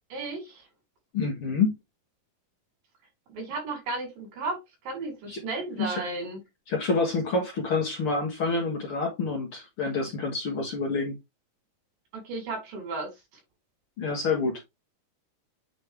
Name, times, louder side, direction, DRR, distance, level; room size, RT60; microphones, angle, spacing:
voice 1, 0.1-0.6 3.3-4.6 4.8-6.4 12.1-13.1, right 3 dB, 80° right, 5.1 m, -34 dB
voice 2, 1.1-1.7 5.3-5.4 5.8-6.0 6.7-11.2 14.0-14.6, left 4 dB, 50° left, 2.1 m, -27 dB
8.6 x 4.0 x 3.4 m
omnidirectional pair, 4.0 m